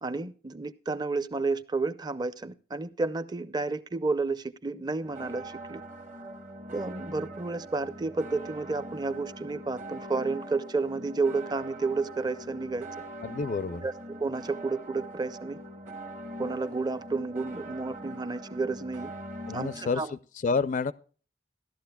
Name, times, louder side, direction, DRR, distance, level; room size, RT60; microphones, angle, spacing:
voice 1, 0.0-5.8 6.7-12.9 13.8-15.6 16.4-19.1 19.5-20.1, right 3 dB, 20° right, 0.5 m, -31 dB
sound 1, 5.0-20.0, right 1 dB, 40° right, 1.2 m, -42 dB
voice 2, 13.2-13.9 19.5-20.9, left 4 dB, 45° left, 0.4 m, -29 dB
15.5 x 12.0 x 2.2 m
head